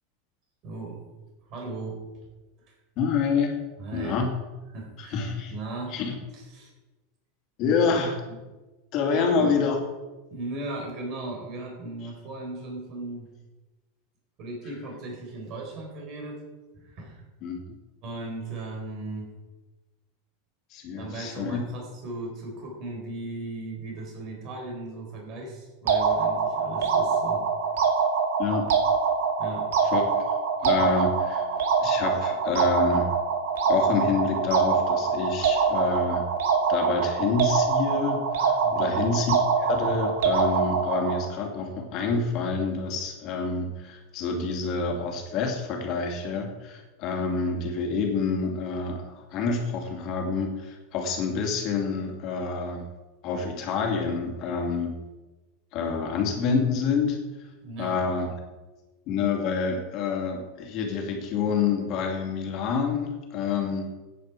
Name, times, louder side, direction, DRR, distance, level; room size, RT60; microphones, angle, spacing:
voice 1, 0.6-1.0 1.4-2.0 2.7-2.8 3.8-4.2 4.7-6.0 6.3-6.7 7.7-7.8 8.2-8.4 9.1-9.5 10.3-13.3 14.4-16.4 16.8-17.2 18.0-19.3 21.0-27.4 29.4-29.7 30.8-30.9 38.6-39.0 57.6-58.0, right 2 dB, 35° right, 0 dB, 4.4 m, -37 dB
voice 2, 3.0-3.6 3.9-4.3 5.1-5.5 5.9-6.1 7.6-8.2 8.9-9.8 17.4-17.6 20.7-21.6 28.4-28.7 29.9-30.2 30.6-31.4 31.8-33.1 33.7-36.3 36.7-52.8 53.2-55.0 55.7-57.2 57.8-58.3 59.1-63.9, left 5 dB, 40° left, 2 dB, 2.5 m, -27 dB
sound 1, 25.9-41.3, right 5 dB, 75° right, 2.2 m, -24 dB
14.5 x 9.3 x 4.9 m, 1.2 s
supercardioid pair, 160°, 0 cm